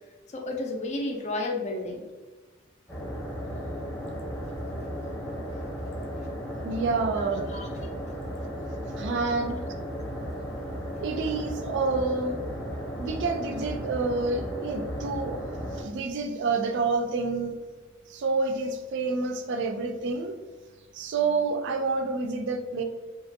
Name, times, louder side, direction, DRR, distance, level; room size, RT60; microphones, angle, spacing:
voice 1, 0.3-2.0 5.5-5.6 7.2-7.7 13.0-13.1, left 2 dB, 35° left, 2 dB, 0.4 m, -32 dB
sound 1, 2.9-15.8, equal, 5° left, 0.7 m, -35 dB
voice 2, 6.6-7.5 7.8-8.0 9.0-9.6 11.0-12.4 12.8-15.4 15.7-17.5 18.1-20.4 20.9-22.8, right 3 dB, 60° right, 6 dB, 0.4 m, -28 dB
2.9 x 2.5 x 2.6 m, 1.3 s
head